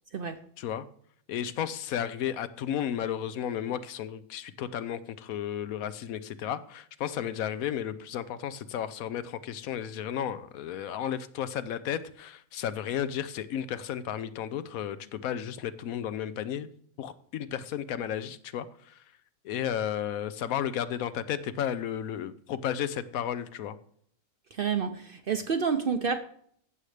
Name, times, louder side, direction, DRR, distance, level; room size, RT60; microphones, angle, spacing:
voice 1, 1.3-16.7 17.0-19.0 19.4-23.8, left 9 dB, 75° left, 13 dB, 1.1 m, -33 dB
voice 2, 24.5-26.2, right 6 dB, 55° right, 8 dB, 0.6 m, -29 dB
14.5 x 6.5 x 3.3 m, 0.64 s
omnidirectional pair, 1.5 m